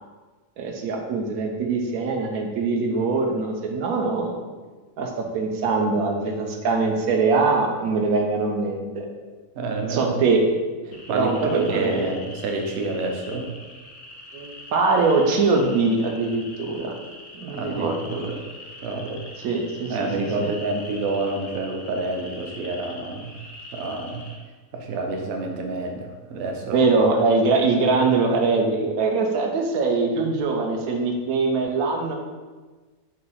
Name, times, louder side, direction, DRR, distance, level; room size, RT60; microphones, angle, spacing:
voice 1, 0.6-4.4 5.0-9.1 9.9-10.4 11.1-12.1 14.3-16.9 17.3-18.2 19.4-20.1 20.4-20.5 26.7-32.2, right 4 dB, 90° right, 2 dB, 1.1 m, -22 dB
voice 2, 9.5-10.2 10.9-13.5 17.5-18.5 18.8-19.2 19.9-23.3 23.7-24.2 24.7-26.8, right 2 dB, 60° right, 2 dB, 0.7 m, -28 dB
sound 1, 10.9-24.4, left 2 dB, 85° left, 1.2 m, -43 dB
3.9 x 2.7 x 4.0 m, 1.3 s
omnidirectional pair, 1.5 m